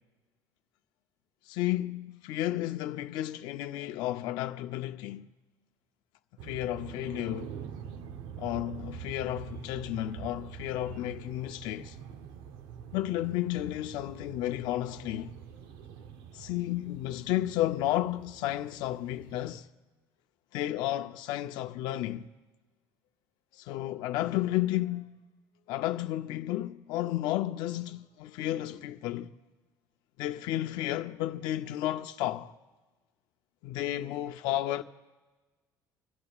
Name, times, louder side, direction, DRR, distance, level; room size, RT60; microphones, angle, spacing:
voice 1, 1.5-5.3 6.4-7.6 8.4-11.9 12.9-15.3 16.3-19.6 20.5-22.3 23.6-25.1 25.7-29.3 30.2-32.5 33.6-34.8, left 14 dB, 75° left, 0.5 m, -32 dB
sound 1, 6.4-19.6, right 8 dB, 80° right, 0.8 m, -45 dB
26.0 x 14.5 x 2.4 m
cardioid pair, 145°, 7 cm